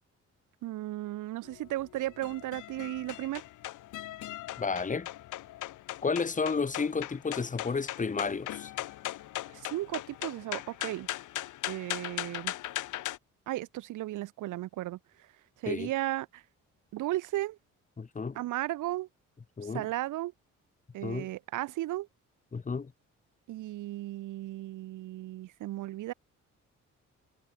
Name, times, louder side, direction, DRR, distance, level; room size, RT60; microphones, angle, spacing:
voice 1, 0.6-3.4 9.5-11.1 11.7-12.5 13.5-15.0 15.6-16.4 16.9-17.6 18.4-19.1 19.6-20.3 20.9-22.1 23.5-26.1, right 16 dB, 85° right, 1.8 m, -35 dB
sound 1, 1.4-13.2, left 14 dB, 85° left, 5.2 m, -39 dB
voice 2, 4.6-5.1 6.0-8.7 15.7-15.9 18.0-18.4 19.6-19.8 21.0-21.3 22.5-22.9, left 5 dB, 25° left, 1.5 m, -32 dB
cardioid pair, 90°, 30 cm